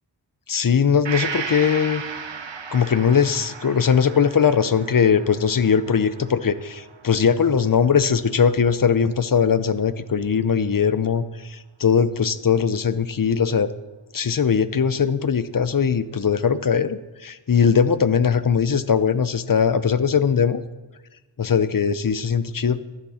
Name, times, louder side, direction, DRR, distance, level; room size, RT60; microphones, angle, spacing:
voice 1, 0.5-2.0 2.7-13.7 14.1-20.6 21.4-22.8, left 6 dB, 50° left, 14 dB, 0.7 m, -20 dB
Gong, 1.0-8.7 9.1-9.2, right 6 dB, 80° right, 1.0 m, -36 dB
13.0 x 11.0 x 4.3 m, 1.1 s
wide cardioid pair, 75°, 44 cm